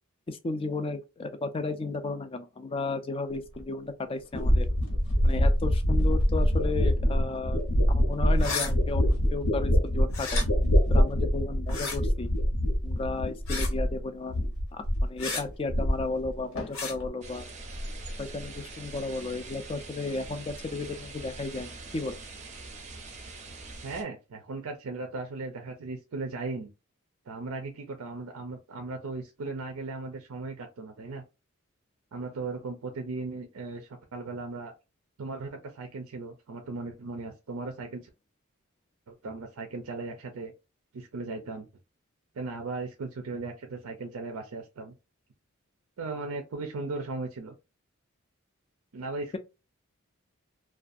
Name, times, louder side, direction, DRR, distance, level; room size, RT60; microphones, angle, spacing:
voice 1, 0.3-4.7 5.2-7.6 7.9-10.4 10.9-12.3 12.8-17.5 18.2-22.2, left 3 dB, 25° left, 0.3 m, -34 dB
sound 1, 3.6-3.7 4.3-14.0 14.3-15.2 15.5-16.3 16.6-17.1, equal, 90° left, 1.0 m, -25 dB
sound 2, 8.4-8.7 10.1-10.4 11.7-12.0 13.5-13.8 15.2-15.4 16.7-16.9, left 4 dB, 65° left, 0.7 m, -32 dB
sound 3, 17.2-24.0, right 2 dB, 35° right, 0.5 m, -42 dB
voice 2, 23.8-26.7 27.3-31.2 32.1-34.7 35.2-38.1 39.1-40.5 40.9-41.7 42.3-44.9 46.0-47.5 48.9-49.4, right 3 dB, 85° right, 0.5 m, -37 dB
2.5 x 2.3 x 2.5 m
head